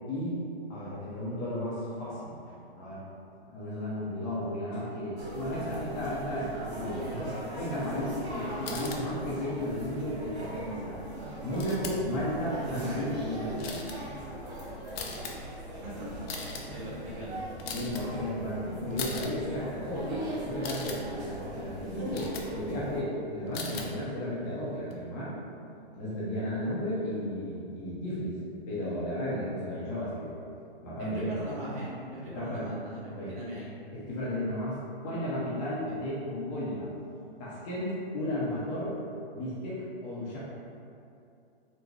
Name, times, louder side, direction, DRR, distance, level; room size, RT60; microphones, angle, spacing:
voice 1, 0.1-0.4 0.7-3.0 3.5-7.1 7.5-10.9 11.4-13.8 14.2-14.3 17.7-25.3 26.0-28.4 28.7-30.3 30.8-31.4 32.3-32.6 33.1-33.3 33.9-34.8 35.0-36.9 37.4-38.9 39.3-40.4, left 1 dB, 25° left, -8 dB, 0.6 m, -34 dB
sound 1, 5.2-23.0, right 1 dB, 85° right, 0.9 m, -39 dB
sound 2, 8.6-9.0 11.5-12.1 12.4-12.8 13.6-14.0 14.9-15.3 16.2-16.6 17.6-18.0 18.9-19.3 20.5-21.0 22.1-22.5 23.5-23.9 24.9-25.0, left 5 dB, 70° left, 0.6 m, -39 dB
voice 2, 15.7-16.1 16.3-17.4 31.0-33.7 35.8-36.0, right 1 dB, 30° right, -7 dB, 0.9 m, -41 dB
3.8 x 2.1 x 3.0 m, 2.6 s
hypercardioid pair, 130°, 32 cm